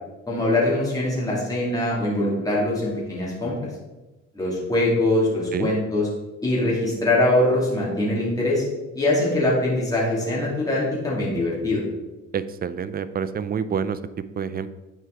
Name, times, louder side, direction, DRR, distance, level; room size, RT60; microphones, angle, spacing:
voice 1, 0.3-3.5 4.3-6.1 6.4-8.6 8.9-11.8, left 1 dB, 10° left, -6 dB, 2.4 m, -22 dB
voice 2, 12.3-14.0 14.4-14.7, right 7 dB, 30° right, 14 dB, 0.5 m, -27 dB
9.2 x 4.6 x 3.8 m, 1.1 s
cardioid pair, 90°, 30 cm